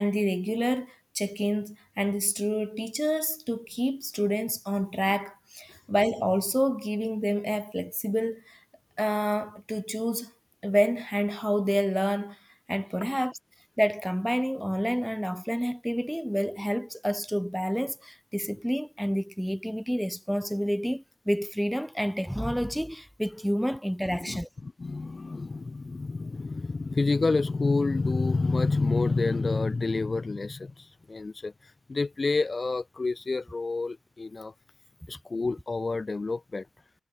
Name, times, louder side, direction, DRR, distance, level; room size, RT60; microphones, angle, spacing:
voice 1, 0.0-8.6 9.0-10.3 10.6-12.4 12.7-13.3 13.8-24.5, equal, ahead, 2.8 m, -28 dB
voice 2, 24.2-34.5 35.1-36.7, left 3 dB, 30° left, 1.9 m, -28 dB
cardioid pair, 100°, 0 cm